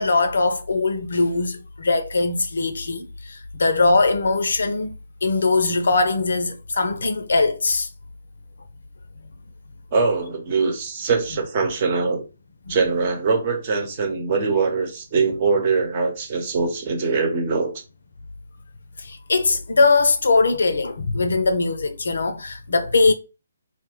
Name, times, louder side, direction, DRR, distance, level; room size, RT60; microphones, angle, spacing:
voice 1, 0.0-7.9 12.7-12.8 19.0-23.1, left 3 dB, 65° left, 0.5 m, -21 dB
voice 2, 9.9-12.2 12.7-17.7, right 4 dB, 35° right, 1.0 m, -22 dB
2.6 x 2.2 x 3.6 m
figure-of-eight pair, 140°, 0 cm